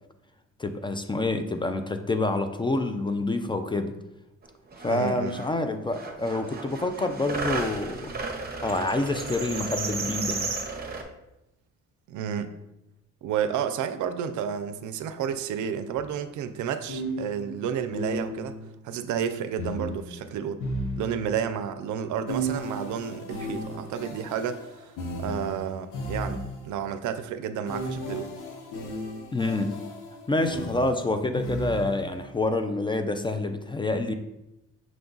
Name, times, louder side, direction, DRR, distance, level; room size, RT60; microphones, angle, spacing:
voice 1, 0.6-3.9 4.8-8.1 8.6-10.5 29.3-29.9 30.3-34.1, left 2 dB, 15° left, 7 dB, 0.3 m, -27 dB
sound 1, 4.4-4.5 4.7-5.5 5.9-11.0, right 4 dB, 30° right, 0.8 m, -33 dB
voice 2, 4.9-5.3 12.1-12.5 13.2-18.6 18.8-20.6 21.0-24.9 25.2-28.3, right 8 dB, 75° right, 10 dB, 0.5 m, -31 dB
sound 2, 15.9-16.0 16.9-18.7 19.6-21.5 22.3-26.8 27.6-32.2, equal, 85° left, 0.9 m, -35 dB
6.1 x 2.3 x 3.8 m, 0.91 s
cardioid pair, 90°, 30 cm